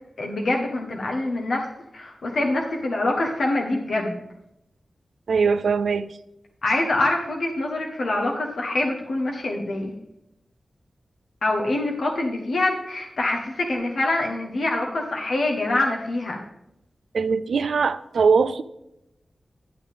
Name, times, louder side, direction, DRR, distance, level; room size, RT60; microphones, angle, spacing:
voice 1, 0.2-1.7 1.9-4.2 6.6-9.9 11.4-16.4, left 2 dB, 80° left, 1.2 m, -25 dB
voice 2, 5.3-6.1 17.1-18.6, right 5 dB, 90° right, 0.4 m, -21 dB
11.5 x 7.1 x 3.5 m
wide cardioid pair, 70°, 0 cm